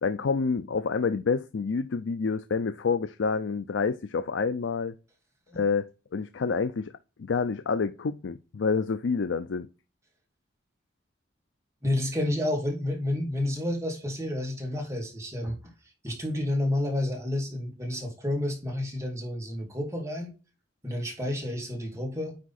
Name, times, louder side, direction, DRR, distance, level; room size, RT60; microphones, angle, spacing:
voice 1, 0.0-4.9 5.5-6.9 7.2-9.7, left 5 dB, 85° left, 0.5 m, -28 dB
voice 2, 11.8-15.6 16.0-20.3 20.8-22.4, left 1 dB, 15° right, 2.2 m, -30 dB
9.6 x 3.6 x 4.1 m
head